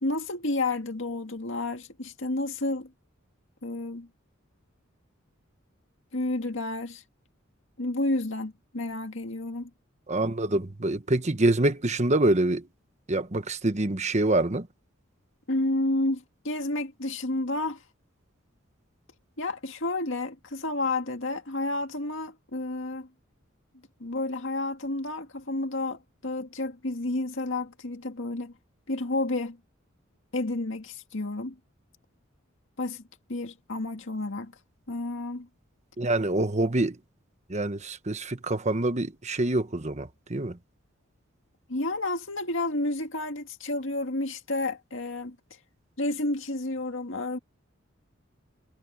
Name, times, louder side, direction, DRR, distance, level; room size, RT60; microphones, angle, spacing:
voice 1, 0.0-2.9 3.6-4.1 6.1-7.0 7.8-9.7 15.5-17.8 19.4-23.1 24.0-28.5 28.9-29.6 30.3-31.6 32.8-33.0 33.3-34.5 34.9-35.5 41.7-45.4 46.0-47.4, left 2 dB, 70° left, 2.1 m, -30 dB
voice 2, 10.1-12.7 13.1-14.7 36.0-37.0 37.5-40.6, right 2 dB, 35° right, 1.2 m, -26 dB
head